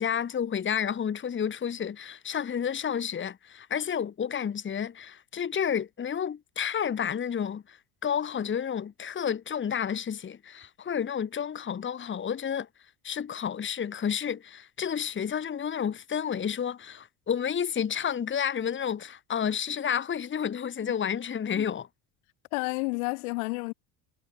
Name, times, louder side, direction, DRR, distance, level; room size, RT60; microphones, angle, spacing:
voice 1, 0.0-12.7 13.0-21.9, left 8 dB, 30° left, 1.7 m, -30 dB
voice 2, 22.5-23.7, left 30 dB, 85° left, 3.1 m, -31 dB
supercardioid pair, 105°, 41 cm